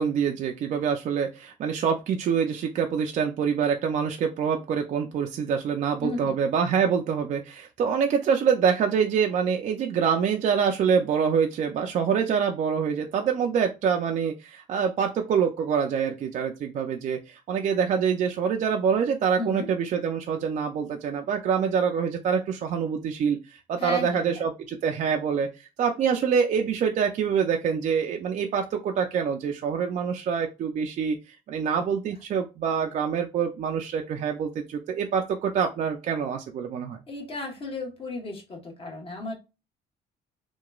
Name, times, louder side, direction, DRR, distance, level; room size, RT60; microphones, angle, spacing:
voice 1, 0.0-37.0, right 7 dB, 45° right, 3 dB, 0.4 m, -25 dB
voice 2, 6.0-6.3 19.4-19.7 23.8-24.4 37.1-39.3, left 2 dB, 35° left, 1 dB, 1.1 m, -34 dB
2.9 x 2.2 x 2.3 m, 0.28 s
cardioid pair, 110°, 17 cm